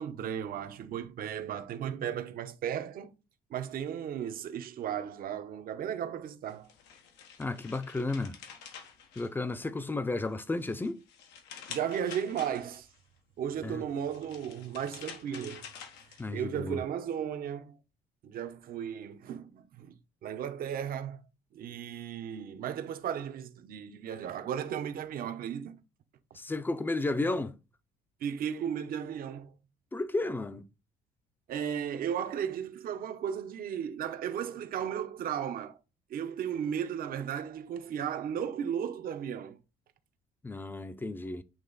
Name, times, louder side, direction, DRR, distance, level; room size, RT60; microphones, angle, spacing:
voice 1, 0.0-3.2 3.5-6.7 11.7-12.9 13.4-15.6 16.3-17.8 18.2-21.2 21.5-25.8 28.2-29.5 31.5-35.8 36.1-39.6, right 9 dB, 60° right, 0.9 m, -35 dB
sound 1, 6.5-9.8 10.3-13.0 13.9-16.6, left 7 dB, 85° left, 1.2 m, -48 dB
voice 2, 7.4-8.4 9.2-11.0 13.6-13.8 16.2-16.8 26.3-27.6 29.9-30.7 40.4-41.4, left 2 dB, 10° left, 0.6 m, -33 dB
8.9 x 3.0 x 4.0 m
cardioid pair, 110°, 17 cm